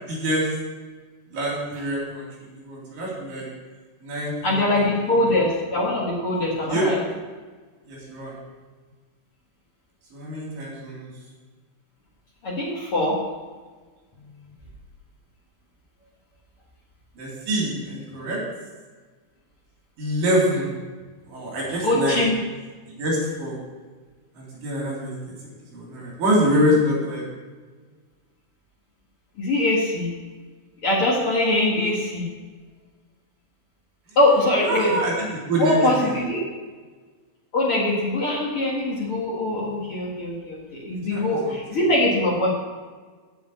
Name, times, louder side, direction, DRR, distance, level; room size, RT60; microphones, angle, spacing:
voice 1, 0.1-0.5 1.3-3.5 4.0-5.4 6.6-6.9 7.9-8.4 10.1-11.1 17.2-18.4 20.0-20.7 21.3-22.2 22.9-23.6 24.3-25.2 25.7-27.2 34.6-36.2 41.1-41.6, equal, 45° right, -4 dB, 4.3 m, -25 dB
voice 2, 4.4-7.0 12.4-13.2 21.8-22.4 29.4-30.1 30.8-32.3 34.1-34.9 35.6-36.4 37.5-42.5, left 1 dB, 55° left, -5 dB, 1.5 m, -22 dB
8.0 x 7.7 x 8.6 m, 1.4 s
omnidirectional pair, 5.7 m